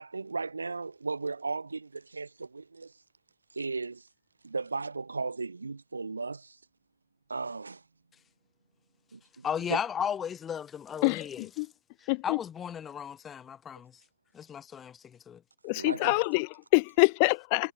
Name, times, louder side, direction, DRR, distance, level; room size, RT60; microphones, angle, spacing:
voice 1, 0.0-2.9 3.5-4.1 4.4-6.6 7.3-7.8 9.1-9.8 15.7-16.1, right 4 dB, 85° right, 3.4 m, -36 dB
voice 2, 9.4-11.5 12.0-13.9 14.3-15.4, left 8 dB, 20° left, 1.6 m, -35 dB
voice 3, 11.0-11.7 12.1-12.4 15.6-17.7, left 33 dB, 40° left, 1.8 m, -26 dB
figure-of-eight pair, 110°, 0 cm